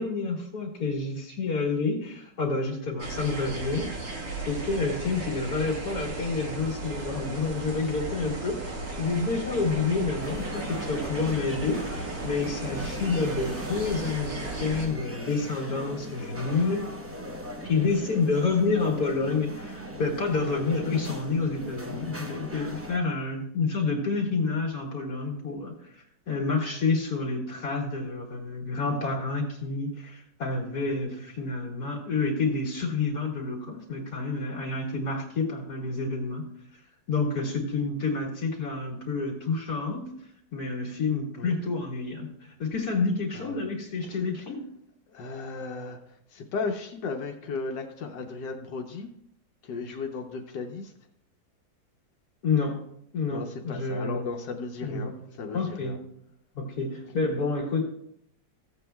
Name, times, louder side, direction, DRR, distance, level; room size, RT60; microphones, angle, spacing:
voice 1, 0.0-4.1 4.4-11.8 12.2-16.9 17.6-25.9 26.3-36.5 37.1-40.1 40.5-44.6 52.4-52.8 53.1-54.2 54.8-55.1 55.5-56.0 56.5-57.9, left 4 dB, 60° left, -1 dB, 2.6 m, -29 dB
sound 1, 3.0-14.9, right 2 dB, 55° right, 2.1 m, -36 dB
sound 2, 10.2-23.0, equal, 15° right, 0.5 m, -39 dB
voice 2, 43.3-43.7 44.1-44.2 45.1-49.1 49.6-50.9 53.3-56.0, left 4 dB, 80° left, 3 dB, 1.5 m, -35 dB
15.5 x 8.2 x 2.3 m, 0.73 s
omnidirectional pair, 1.9 m